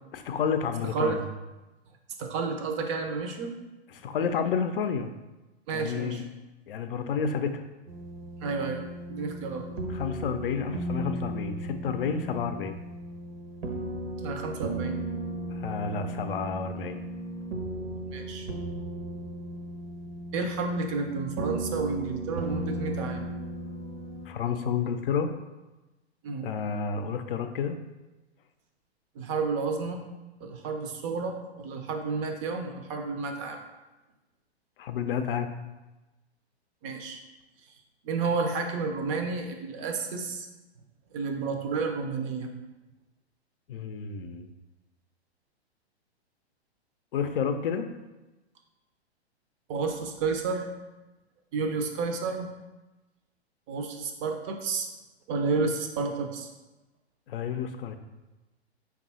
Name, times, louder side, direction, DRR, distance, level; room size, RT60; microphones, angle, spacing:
voice 1, 0.1-1.2 4.0-5.1 5.7-6.3 6.7-7.6 9.9-12.8 15.5-17.0 24.3-25.3 26.4-27.8 34.8-35.5 43.7-44.5 47.1-47.9 57.3-58.0, left 6 dB, 55° left, 8 dB, 0.5 m, -30 dB
voice 2, 0.8-1.2 2.2-3.5 5.7-6.2 8.4-9.6 14.2-15.0 18.0-18.5 20.3-23.3 26.2-26.5 29.1-30.0 30.4-33.6 36.8-37.2 38.0-40.5 41.1-42.5 49.7-50.7 51.5-52.5 53.7-54.9 55.3-56.5, right 4 dB, 30° right, 4 dB, 0.5 m, -31 dB
sound 1, 7.9-24.3, right 1 dB, 60° right, 0.8 m, -36 dB
5.3 x 2.4 x 4.1 m, 1.1 s
figure-of-eight pair, 110°, 33 cm